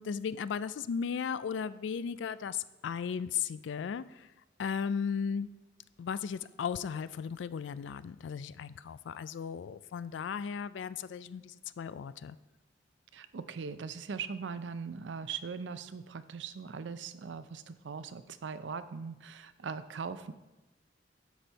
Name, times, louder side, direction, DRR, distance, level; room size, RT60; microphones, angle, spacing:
voice 1, 0.0-4.3 4.6-5.5 6.0-12.4, left 6 dB, 85° left, 16 dB, 0.3 m, -36 dB
voice 2, 13.1-20.3, right 5 dB, 85° right, 13 dB, 0.5 m, -40 dB
11.5 x 4.3 x 4.6 m, 1.1 s
head